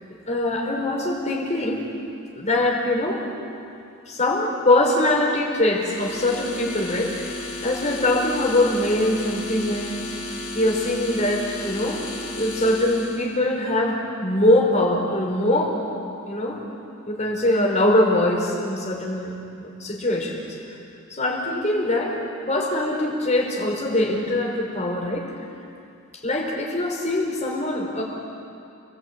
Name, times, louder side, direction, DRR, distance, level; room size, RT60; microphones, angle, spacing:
voice 1, 0.3-1.8 2.3-3.3 4.1-10.1 10.5-12.0 12.4-15.8 16.3-16.6 17.1-20.6 21.1-22.2 22.5-25.3 26.1-28.0, left 1 dB, 35° left, 0 dB, 5.2 m, -23 dB
sound 1, 5.8-13.3, left 2 dB, 90° left, 5.7 m, -34 dB
30.0 x 20.0 x 9.0 m, 2.5 s
head